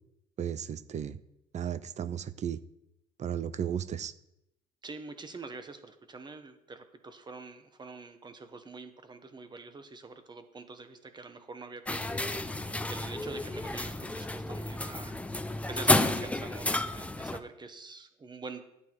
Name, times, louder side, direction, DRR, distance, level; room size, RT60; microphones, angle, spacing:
voice 1, 0.4-1.2 1.5-2.6 3.2-4.1, right 9 dB, 45° right, 15 dB, 0.5 m, -34 dB
voice 2, 4.8-15.2 15.7-18.6, right 3 dB, 25° right, 9 dB, 1.3 m, -45 dB
sound 1, 11.9-17.4, left 2 dB, 10° left, 0.7 m, -31 dB
11.5 x 8.3 x 4.7 m, 0.86 s
cardioid pair, 110°, 17 cm